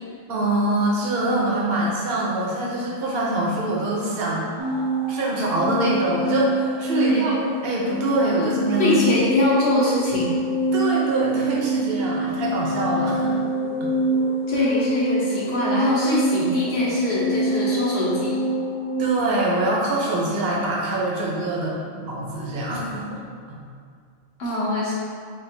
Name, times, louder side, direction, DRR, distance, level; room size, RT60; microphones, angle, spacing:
voice 1, 0.3-7.3 7.6-9.0 10.7-13.4 13.8-13.9 19.0-23.2 23.5-23.6, right 1 dB, 55° right, -3 dB, 0.9 m, -24 dB
sound 1, 4.6-19.1, right 2 dB, 35° right, 0.4 m, -25 dB
voice 2, 7.0-7.3 8.4-8.5 8.8-10.3 14.5-18.4 24.4-24.9, left 2 dB, 60° left, -7 dB, 1.1 m, -23 dB
5.8 x 2.5 x 2.6 m, 2.1 s
omnidirectional pair, 1.3 m